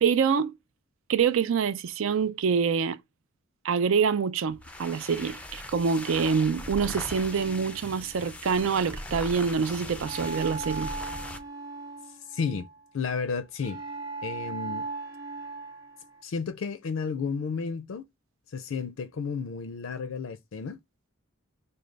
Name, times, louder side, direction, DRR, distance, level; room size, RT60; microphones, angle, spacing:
voice 1, 0.0-0.5 1.1-3.0 3.6-10.9, right 6 dB, 75° right, 0.4 m, -26 dB
sound 1, 4.5-11.5, left 1 dB, 5° left, 0.4 m, -40 dB
sound 2, 6.2-8.7 10.0-12.8 13.6-16.2, right 3 dB, 15° right, 0.9 m, -39 dB
voice 2, 12.3-12.7 12.9-13.8 14.2-14.8 16.2-18.0 18.5-20.8, left 5 dB, 75° left, 0.4 m, -32 dB
5.0 x 2.2 x 3.3 m
head